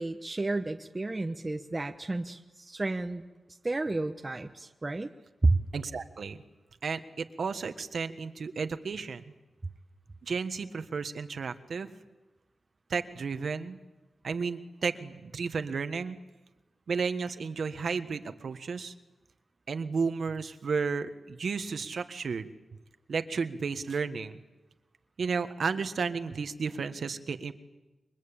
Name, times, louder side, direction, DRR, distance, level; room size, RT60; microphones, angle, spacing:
voice 1, 0.0-3.2 3.6-5.1 5.4-5.6, right 2 dB, 25° right, 4 dB, 1.1 m, -30 dB
voice 2, 5.7-6.4 6.8-9.3 10.2-11.9 12.9-13.8 14.2-16.2 16.9-18.9 19.7-22.5 23.1-24.4 25.2-27.5, right 5 dB, 70° right, 9 dB, 1.5 m, -33 dB
28.0 x 24.0 x 8.8 m, 1.1 s
wide cardioid pair, 125°, 0 cm